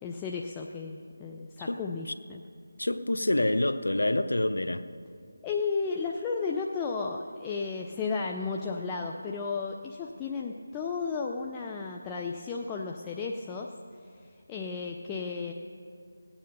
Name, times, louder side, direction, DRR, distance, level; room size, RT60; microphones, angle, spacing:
voice 1, 0.0-2.4 5.4-13.7 14.0-15.5, left 4 dB, 15° left, 0 dB, 0.5 m, -34 dB
voice 2, 2.8-4.8, left 1 dB, 80° left, 10 dB, 0.8 m, -27 dB
18.0 x 9.1 x 5.3 m, 2.3 s
figure-of-eight pair, 165°, 0 cm